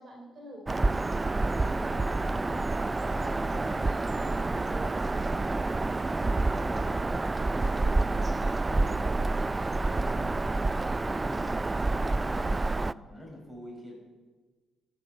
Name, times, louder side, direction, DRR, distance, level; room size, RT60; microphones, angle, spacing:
voice 1, 0.0-2.6 2.8-5.5 5.7-10.4, equal, 50° right, 0 dB, 3.2 m, -47 dB
Bird vocalization bird call bird song, 0.7-12.9, right 2 dB, 20° right, 0.3 m, -28 dB
voice 2, 3.3-3.8 11.2-12.6 12.9-13.9, left 1 dB, ahead, -1 dB, 5.3 m, -46 dB
13.5 x 8.5 x 8.5 m, 1.3 s
cardioid pair, 90°, 0 cm